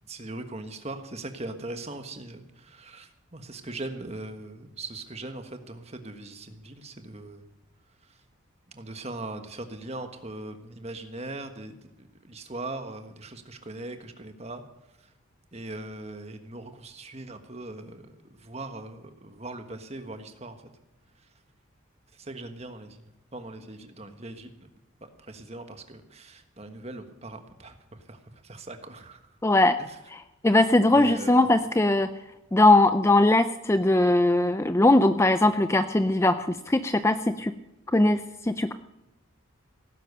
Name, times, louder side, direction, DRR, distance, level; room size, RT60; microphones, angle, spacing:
voice 1, 0.1-7.4 8.7-14.6 15.5-18.1 18.4-20.6 22.2-23.0 23.3-24.7 25.3-28.2 28.4-29.2 29.8-30.0 30.9-31.4, right 2 dB, 30° right, 7 dB, 1.4 m, -40 dB
voice 2, 29.4-29.8 30.1-32.1 32.5-37.5 37.9-38.7, left 2 dB, 15° left, 11 dB, 0.4 m, -20 dB
17.5 x 10.5 x 6.7 m, 0.94 s
head